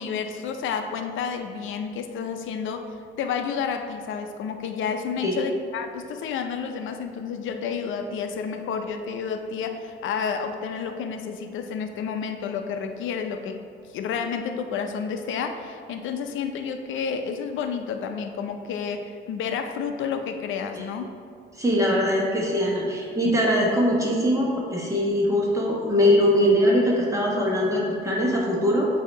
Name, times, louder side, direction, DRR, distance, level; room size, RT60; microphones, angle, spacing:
voice 1, 0.0-13.6 13.9-21.1, left 6 dB, 80° left, 6 dB, 0.5 m, -30 dB
voice 2, 21.6-28.9, equal, 15° right, -4 dB, 1.3 m, -22 dB
7.7 x 2.8 x 4.5 m, 2.3 s
cardioid pair, 90°, 20 cm